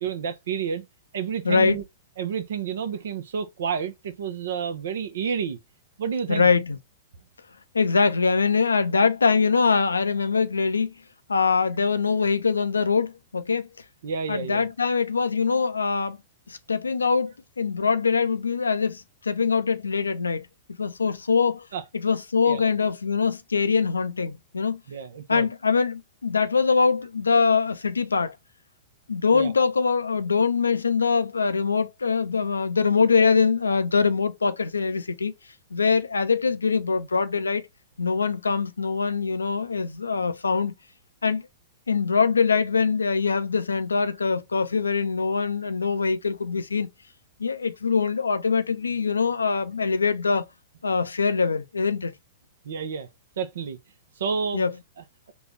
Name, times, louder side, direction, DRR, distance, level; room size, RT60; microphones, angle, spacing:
voice 1, 0.0-0.8 1.1-1.8 2.2-5.6 6.0-6.5 14.0-14.7 21.7-21.8 22.4-22.6 24.9-25.5 29.3-29.5 52.6-53.1 53.4-53.8 54.2-54.6, right 6 dB, 65° right, 0.8 m, -30 dB
voice 2, 1.4-1.8 6.3-6.8 7.7-10.9 11.3-13.7 14.3-16.2 16.5-20.5 20.8-21.7 21.9-24.8 25.3-28.4 29.1-35.3 35.7-37.6 38.0-40.7 41.2-41.4 41.9-46.9 47.4-50.5 50.8-52.1 54.5-54.7, left 5 dB, 90° left, 0.5 m, -23 dB
4.0 x 2.4 x 3.4 m
hypercardioid pair, 115°, 0 cm